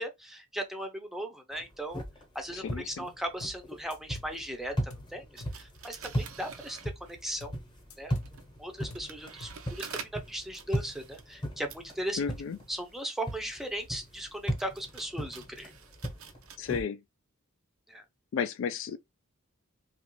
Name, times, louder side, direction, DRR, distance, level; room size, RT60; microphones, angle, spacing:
voice 1, 0.0-2.0 2.3-7.5 8.0-8.1 8.6-9.5 9.8-9.9 10.3-12.2 12.7-15.7 17.9-18.0, right 1 dB, ahead, 0.6 m, -37 dB
sound 1, 1.5-13.0 13.2-16.8, equal, 20° left, 0.8 m, -38 dB
voice 2, 2.5-3.1 12.2-12.6 16.6-17.0 18.3-19.0, left 6 dB, 60° left, 0.3 m, -33 dB
sound 2, 3.4-3.6 3.9-4.4 4.9-5.1 5.4-5.6 7.4-7.6 7.9-8.4 8.9-9.1 9.4-9.6 9.9-10.0, left 2 dB, 80° left, 0.7 m, -47 dB
sound 3, 5.4-7.4 8.1-16.6, right 7 dB, 70° right, 0.5 m, -49 dB
2.9 x 2.4 x 3.0 m
head